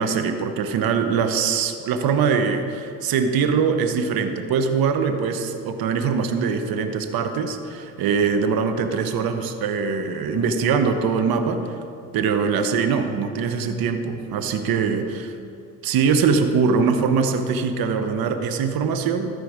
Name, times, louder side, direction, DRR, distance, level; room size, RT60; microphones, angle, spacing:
voice 1, 0.0-11.8 12.1-15.3 15.8-19.3, right 5 dB, 60° right, 8 dB, 0.9 m, -22 dB
13.0 x 5.0 x 4.9 m, 2.4 s
supercardioid pair, 70°, 40 cm